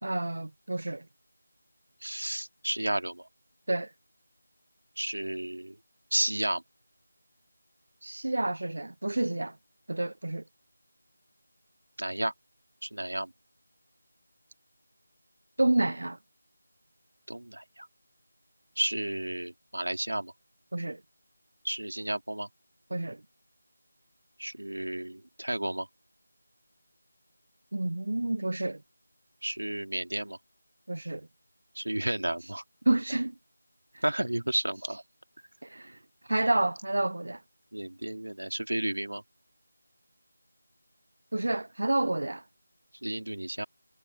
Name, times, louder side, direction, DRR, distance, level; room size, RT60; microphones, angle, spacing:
voice 1, 0.0-1.0 3.7-3.9 8.0-9.6 9.9-10.4 15.6-16.2 20.7-21.0 22.9-23.2 27.7-28.8 30.9-31.3 32.4-32.5 32.9-33.3 33.9-34.0 35.6-37.4 41.3-42.4, right 2 dB, 70° right, 0.5 m, -29 dB
voice 2, 2.0-3.3 5.0-5.8 6.1-6.6 12.0-12.3 12.8-13.3 17.3-17.9 18.8-20.3 21.6-22.5 24.4-25.9 29.4-30.4 31.7-32.6 34.0-35.0 37.7-39.2 43.0-43.6, right 1 dB, 90° right, 2.8 m, -32 dB
figure-of-eight pair, 170°, 0 cm